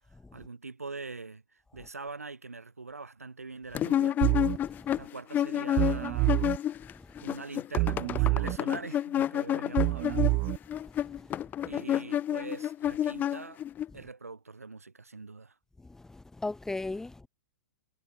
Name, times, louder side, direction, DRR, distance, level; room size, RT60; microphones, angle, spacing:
voice 1, 0.3-1.4 1.7-4.2 4.9-6.5 7.2-10.4 11.6-13.6 13.9-15.5, right 3 dB, 80° right, 7.7 m, -43 dB
sound 1, 3.8-6.9 7.2-13.9, left 11 dB, 20° left, 1.6 m, -30 dB
sound 2, 4.2-4.6 5.8-6.6 7.8-8.6 9.8-10.6, right 25 dB, 35° right, 0.6 m, -26 dB
voice 2, 16.1-17.3, left 2 dB, 5° left, 2.0 m, -36 dB
figure-of-eight pair, 110°, 8 cm